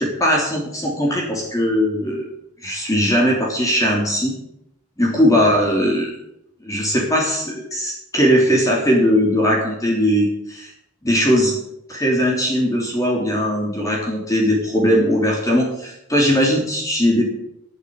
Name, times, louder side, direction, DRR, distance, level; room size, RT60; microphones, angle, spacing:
voice 1, 0.0-2.3 2.6-4.3 5.0-6.1 6.6-10.7 11.0-11.6 11.9-17.2, equal, 15° left, -2 dB, 3.3 m, -19 dB
11.0 x 8.3 x 9.6 m, 0.78 s
head